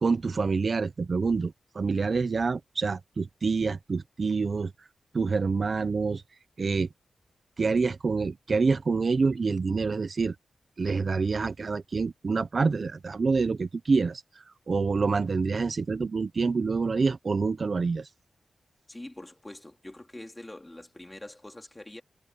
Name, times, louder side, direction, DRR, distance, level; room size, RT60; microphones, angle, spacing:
voice 1, 0.0-4.7 5.1-6.2 6.6-6.9 7.6-10.3 10.8-18.1, right 4 dB, 40° right, 0.6 m, -27 dB
voice 2, 18.9-22.0, left 1 dB, 15° left, 3.7 m, -44 dB
wide cardioid pair, 145°, 0 cm